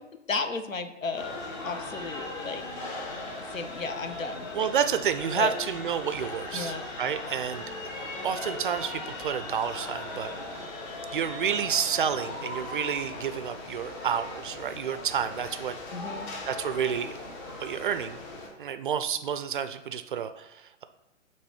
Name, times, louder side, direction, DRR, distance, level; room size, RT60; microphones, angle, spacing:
voice 1, 0.3-1.4 1.6-2.7 3.2-4.7 5.4-5.6 6.5-6.9 15.9-16.3, left 4 dB, 85° left, 8 dB, 0.8 m, -34 dB
Call to Prayer at Marina Mall, 1.2-18.5, left 2 dB, 35° left, 1.4 m, -38 dB
voice 2, 4.5-7.6 8.2-10.3 11.1-15.8 16.5-17.2 17.6-18.2 18.6-20.8, right 8 dB, 45° right, 10 dB, 0.4 m, -30 dB
7.7 x 3.1 x 4.4 m, 0.90 s
figure-of-eight pair, 120°, 39 cm